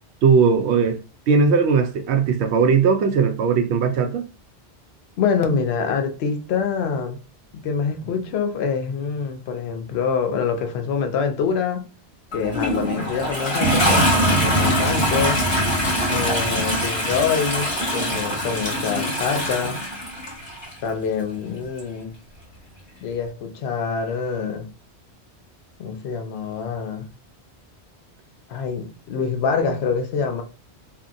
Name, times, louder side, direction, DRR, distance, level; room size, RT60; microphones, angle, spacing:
voice 1, 0.2-1.0 1.3-4.3, right 5 dB, 75° right, 0.8 m, -18 dB
voice 2, 5.2-7.2 7.5-11.9 12.3-15.4 16.1-19.8 20.8-22.1 23.0-24.7 25.8-27.1 28.5-30.4, left 6 dB, 70° left, 0.8 m, -25 dB
Toilet flush, 12.3-20.7 21.8-21.9, equal, 25° left, 1.4 m, -22 dB
2.8 x 2.7 x 2.6 m
omnidirectional pair, 1.1 m